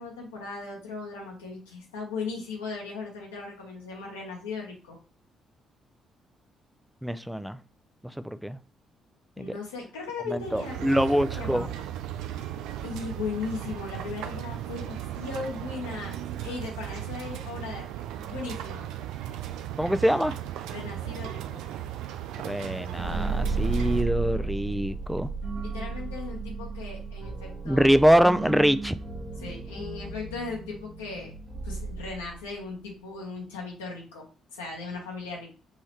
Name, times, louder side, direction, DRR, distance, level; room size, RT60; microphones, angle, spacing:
voice 1, 0.0-5.0 9.4-11.8 12.8-18.9 20.7-21.6 25.6-27.9 29.4-31.3 31.6-34.3 34.5-35.5, left 4 dB, 85° left, 1.2 m, -37 dB
voice 2, 7.0-7.6 8.0-8.6 9.4-9.6 10.3-11.7 19.8-20.4 22.4-25.3 27.6-29.0, equal, 5° right, 0.4 m, -24 dB
sound 1, 10.3-24.0, right 12 dB, 70° right, 0.4 m, -36 dB
sound 2, 22.9-32.6, right 4 dB, 30° right, 1.2 m, -33 dB
5.5 x 3.1 x 3.0 m
hypercardioid pair, 45°, 0 cm